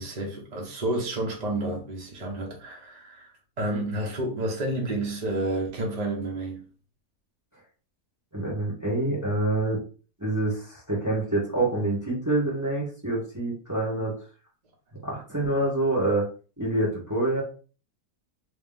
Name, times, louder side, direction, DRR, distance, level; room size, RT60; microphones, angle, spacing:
voice 1, 0.0-6.6, right 1 dB, 30° right, 0.9 m, -30 dB
voice 2, 8.3-9.8 10.2-14.1 15.0-16.3 16.6-17.4, right 2 dB, 10° right, 1.3 m, -26 dB
3.2 x 2.9 x 3.6 m
omnidirectional pair, 1.7 m